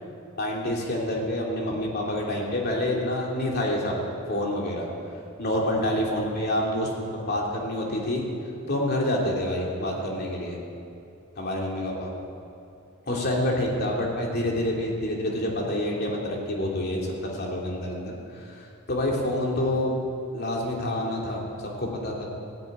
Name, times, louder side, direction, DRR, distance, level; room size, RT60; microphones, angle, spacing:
voice 1, 0.4-3.9 4.3-4.9 5.4-8.2 8.7-10.6 11.4-12.1 13.1-18.1 18.9-19.9 20.3-21.4 21.8-22.2, left 1 dB, 50° left, -2 dB, 3.0 m, -27 dB
15.0 x 10.5 x 8.9 m, 2.6 s
head